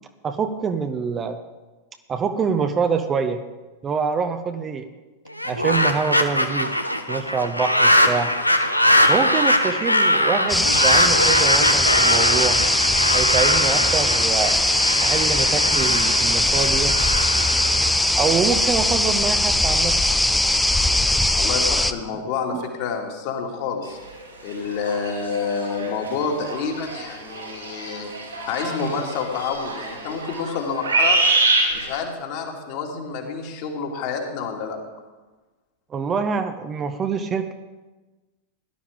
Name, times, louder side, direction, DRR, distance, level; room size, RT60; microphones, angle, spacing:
voice 1, 0.2-1.4 2.1-3.4 3.8-4.8 5.4-6.7 7.1-8.3 9.1-12.6 13.1-14.6 15.0-17.0 18.1-19.9 22.5-22.6 35.9-37.5, right 6 dB, 25° right, 8 dB, 0.8 m, -25 dB
sound 1, 5.3-18.5, left 1 dB, 90° left, 0.8 m, -21 dB
sound 2, 10.5-21.9, left 1 dB, 5° left, 0.6 m, -20 dB
voice 2, 21.4-24.0 24.4-28.1 28.5-31.2 31.7-34.8, left 5 dB, 45° left, 1 dB, 2.4 m, -28 dB
sound 3, 24.1-24.2 24.5-32.0, right 3 dB, 75° right, 5.2 m, -25 dB
17.0 x 11.5 x 3.6 m, 1.2 s
figure-of-eight pair, 90°, 0 cm